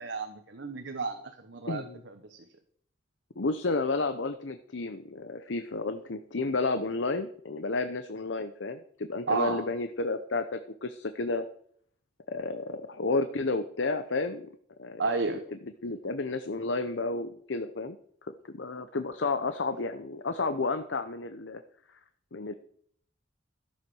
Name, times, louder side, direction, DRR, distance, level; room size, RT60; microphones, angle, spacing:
voice 1, 0.0-2.4 9.3-9.7 15.0-15.4, right 3 dB, 80° right, 6 dB, 1.2 m, -32 dB
voice 2, 1.7-2.0 3.4-11.5 12.3-14.5 14.8-15.0 15.8-18.0 18.2-21.6 22.3-22.5, left 3 dB, 80° left, 9 dB, 0.8 m, -31 dB
13.5 x 7.5 x 6.3 m, 0.62 s
head